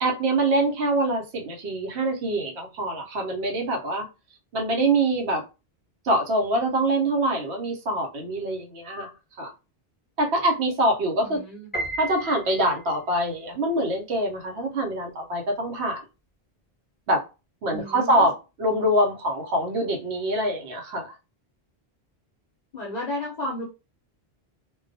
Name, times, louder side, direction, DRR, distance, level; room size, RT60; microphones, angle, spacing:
voice 1, 0.0-4.1 4.5-5.4 6.0-9.1 9.4-9.5 10.2-11.4 12.0-16.0 17.1-17.2 17.6-18.3 18.6-21.1, right 1 dB, 85° right, 2 dB, 1.0 m, -24 dB
voice 2, 11.2-11.7 17.7-18.3 22.7-23.6, left 1 dB, 50° left, -3 dB, 0.6 m, -33 dB
Piano, 11.7-13.0, right 1 dB, 10° left, 0.7 m, -33 dB
2.2 x 2.2 x 2.6 m, 0.29 s
omnidirectional pair, 1.1 m